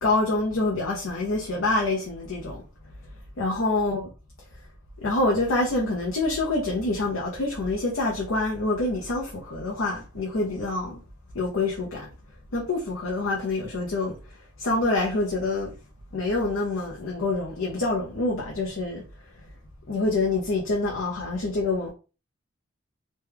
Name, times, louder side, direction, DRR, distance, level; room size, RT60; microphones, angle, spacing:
voice 1, 0.0-2.6 3.4-4.0 5.0-11.0 11.3-12.1 12.5-14.2 14.6-15.7 16.1-19.0 19.9-21.9, left 2 dB, 85° left, 0.8 m, -26 dB
3.1 x 2.2 x 3.5 m
head